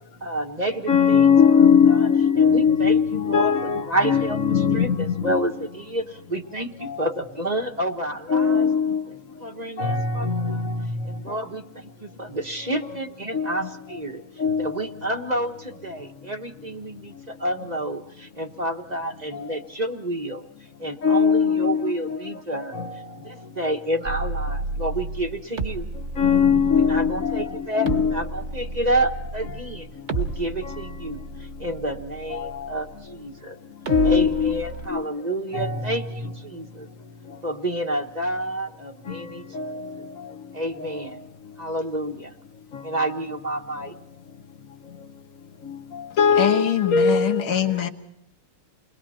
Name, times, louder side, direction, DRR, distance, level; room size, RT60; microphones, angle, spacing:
voice 1, 0.2-1.4 2.4-8.7 9.4-10.6 11.0-14.2 14.6-20.4 20.8-22.8 23.2-25.8 26.9-29.9 30.1-31.2 31.6-33.6 34.0-36.9 37.4-39.4 39.7-39.8 40.5-41.2 41.6-42.3 42.8-43.9, right 1 dB, 25° right, 1.3 m, -29 dB
voice 2, 0.9-5.4 6.8-7.0 8.3-9.0 9.8-10.8 11.3-11.4 13.3-13.5 14.4-14.7 19.3-19.4 21.0-22.2 22.7-23.0 26.2-28.2 30.6-30.8 32.3-32.7 33.9-34.6 34.9-35.0 35.5-36.0 39.1-39.2 39.5-39.8 45.7-45.8 46.2-47.4, left 6 dB, 45° left, 1.5 m, -20 dB
sound 1, 24.1-33.3 33.9-34.9, right 3 dB, 40° right, 1.5 m, -32 dB
voice 3, 46.4-47.9, left 10 dB, 75° left, 2.2 m, -23 dB
29.5 x 21.5 x 4.3 m
omnidirectional pair, 2.3 m